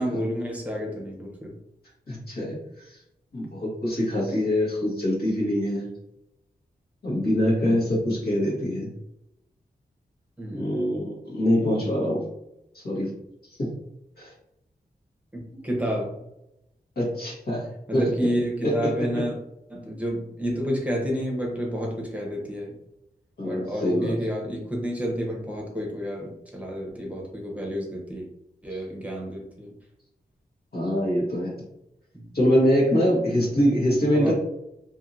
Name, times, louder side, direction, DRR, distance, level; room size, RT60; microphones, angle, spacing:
voice 1, 0.0-1.5 7.6-7.9 10.4-10.8 15.3-16.2 17.9-19.3 19.7-22.7 23.4-28.3 28.6-29.7 32.1-32.3 34.1-34.3, equal, 10° right, -2 dB, 0.9 m, -30 dB
voice 2, 2.1-3.0 3.3-5.9 7.0-8.9 10.5-12.2 12.7-13.1 13.6-13.7 14.2-14.3 15.5-15.6 17.0-17.7 17.9-18.3 18.6-19.2 23.4-24.1 28.7-28.8 30.7-31.5 32.3-34.3, equal, 70° left, -5 dB, 1.4 m, -24 dB
2.7 x 2.6 x 2.6 m, 0.85 s
cardioid pair, 60°, 17 cm